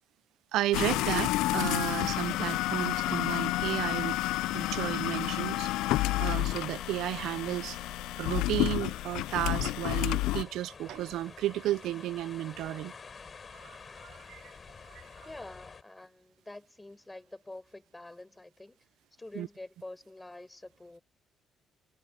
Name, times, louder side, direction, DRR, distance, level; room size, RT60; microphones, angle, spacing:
voice 1, 0.5-4.2 4.5-5.7 6.2-7.8 8.2-12.9 13.5-14.5 14.9-15.0 19.4-19.5, right 14 dB, 75° right, 0.6 m, -33 dB
sound 1, 0.7-10.4, left 17 dB, 85° left, 0.5 m, -30 dB
sound 2, 2.0-15.8, left 5 dB, 40° left, 4.3 m, -48 dB
voice 2, 15.2-18.8 19.2-21.0, left 2 dB, 15° left, 6.3 m, -47 dB
supercardioid pair, 75°, 0 cm